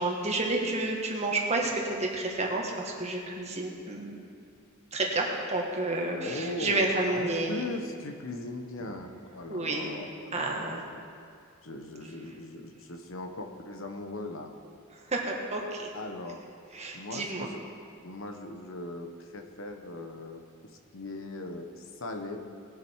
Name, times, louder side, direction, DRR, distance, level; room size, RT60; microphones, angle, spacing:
voice 1, 0.0-4.2 4.9-7.6 9.5-9.9 10.3-10.8 15.1-15.9 16.7-17.5, right 2 dB, 30° right, 0 dB, 1.7 m, -30 dB
voice 2, 6.2-11.0 11.6-14.5 15.9-16.4 16.9-17.6 18.0-22.4, left 2 dB, 70° left, 5 dB, 1.1 m, -39 dB
20.0 x 7.7 x 4.7 m, 2.3 s
head